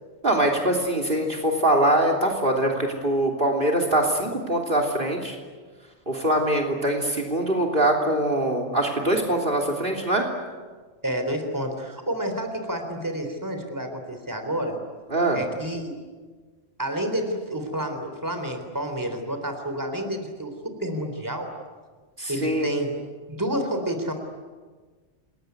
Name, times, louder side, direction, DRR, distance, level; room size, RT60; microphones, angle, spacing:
voice 1, 0.2-5.4 6.1-10.2 15.1-15.4 22.2-22.7, right 1 dB, 50° right, 4 dB, 3.4 m, -23 dB
voice 2, 11.0-14.8 15.3-15.9 16.8-20.5 20.8-21.5 22.3-23.0 23.3-24.1, right 1 dB, 15° right, 6 dB, 3.6 m, -29 dB
28.5 x 21.0 x 9.5 m, 1.4 s
omnidirectional pair, 1.2 m